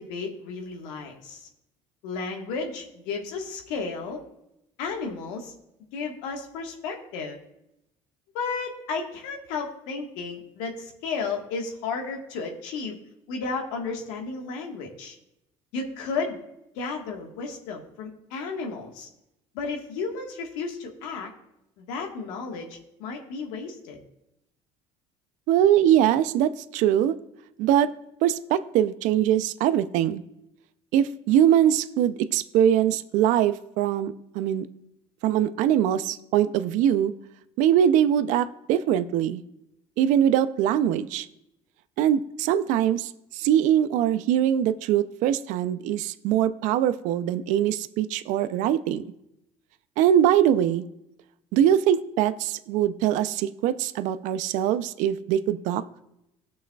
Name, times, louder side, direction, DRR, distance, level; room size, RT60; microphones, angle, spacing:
voice 1, 0.0-1.5 2.0-4.2 4.8-5.5 5.9-7.4 8.3-13.0 13.3-15.1 15.7-16.4 16.7-19.1 19.5-21.3 21.8-24.0, left 4 dB, 85° left, 2 dB, 1.5 m, -33 dB
voice 2, 25.5-27.2 27.6-27.9 28.2-30.2 30.9-34.7 35.2-37.1 37.6-39.4 40.0-41.3 42.0-49.0 50.0-50.8 51.5-55.8, right 10 dB, 70° right, 12 dB, 0.5 m, -22 dB
17.5 x 6.2 x 2.3 m, 0.85 s
supercardioid pair, 85°, 13 cm